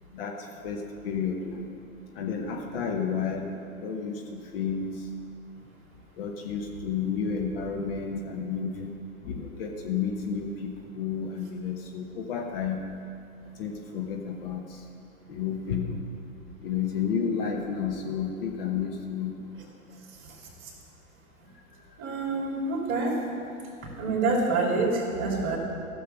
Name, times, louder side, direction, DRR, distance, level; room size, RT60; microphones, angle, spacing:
voice 1, 0.1-1.7 2.1-5.1 6.2-8.9 9.2-12.8 13.6-14.8 15.3-16.1 16.6-19.5, left 6 dB, 40° left, 2 dB, 1.1 m, -31 dB
voice 2, 22.0-23.2 24.0-25.6, right 3 dB, 30° right, -1 dB, 2.7 m, -26 dB
14.5 x 6.7 x 6.8 m, 2.5 s
figure-of-eight pair, 115°, 43 cm